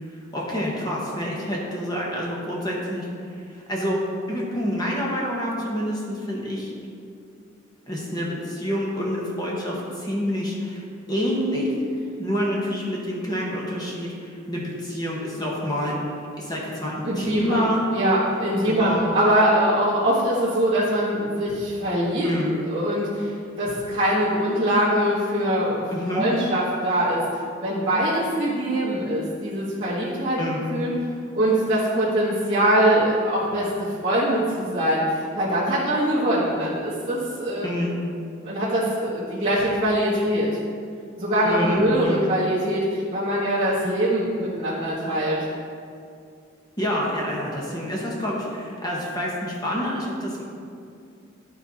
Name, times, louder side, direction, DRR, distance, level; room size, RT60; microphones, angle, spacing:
voice 1, 0.3-3.1 3.5-4.0 4.3-6.7 7.9-10.8 11.1-11.7 12.2-16.0 16.4-17.9 18.6-19.0 22.2-22.6 25.9-26.3 30.4-30.6 37.6-38.0 41.4-42.2 46.8-50.4, equal, 20° left, -4 dB, 1.1 m, -27 dB
voice 2, 17.0-17.7 17.9-22.3 22.7-27.2 27.6-30.4 30.7-30.9 31.3-35.0 35.3-37.7 38.4-40.5 41.2-45.4, right 1 dB, 25° right, -11 dB, 1.4 m, -23 dB
12.0 x 4.5 x 4.1 m, 2.4 s
head